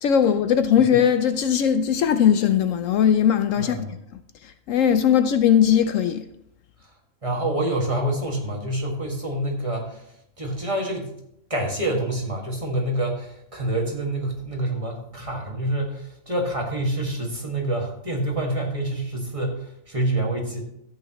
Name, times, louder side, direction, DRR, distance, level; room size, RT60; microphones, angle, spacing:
voice 1, 0.0-3.8 4.4-6.3, left 8 dB, 70° left, 0.9 m, -19 dB
voice 2, 3.6-3.9 7.2-10.0 10.4-11.1 11.5-20.6, right 1 dB, 25° right, 1.9 m, -27 dB
13.0 x 8.7 x 3.0 m
omnidirectional pair, 1.5 m